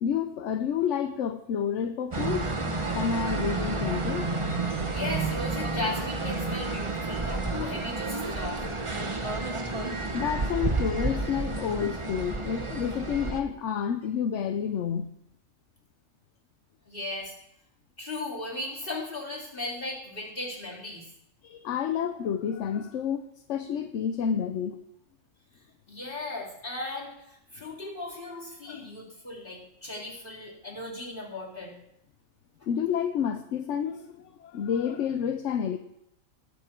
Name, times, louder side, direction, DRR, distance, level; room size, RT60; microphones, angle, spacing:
voice 1, 0.0-2.6 2.9-4.3 10.1-15.1 21.4-24.8 28.7-28.8 32.7-35.8, left 8 dB, 70° left, 9 dB, 1.0 m, -29 dB
sound 1, 2.1-13.4, right 3 dB, 25° right, 0.9 m, -30 dB
voice 2, 4.9-8.6 16.9-17.3 18.0-21.1 25.9-31.8, left 2 dB, 40° left, -5 dB, 3.8 m, -37 dB
20.0 x 7.1 x 4.5 m, 0.79 s
omnidirectional pair, 1.3 m